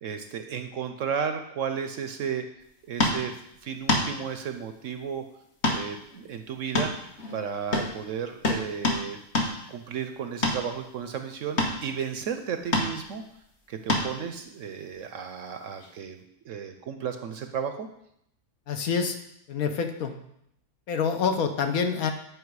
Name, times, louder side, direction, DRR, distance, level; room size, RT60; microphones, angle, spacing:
voice 1, 0.0-2.5 2.9-3.3 3.6-5.2 5.7-6.9 7.3-9.2 9.5-13.2 13.7-17.9, right 7 dB, 65° right, 7 dB, 0.9 m, -33 dB
sound 1, 3.0-3.2 3.9-4.1 5.6-5.8 6.1-6.2 6.7-7.4 7.7-7.9 8.4-9.0 9.3-9.5 10.4-10.6 11.6-11.8 12.7-12.9 13.9-14.1 15.8-15.9, left 2 dB, 45° left, 1.4 m, -25 dB
voice 2, 18.7-19.2 19.5-20.2 20.9-22.1, left 6 dB, 70° left, 6 dB, 1.3 m, -26 dB
9.6 x 5.1 x 4.7 m, 0.76 s
omnidirectional pair, 1.6 m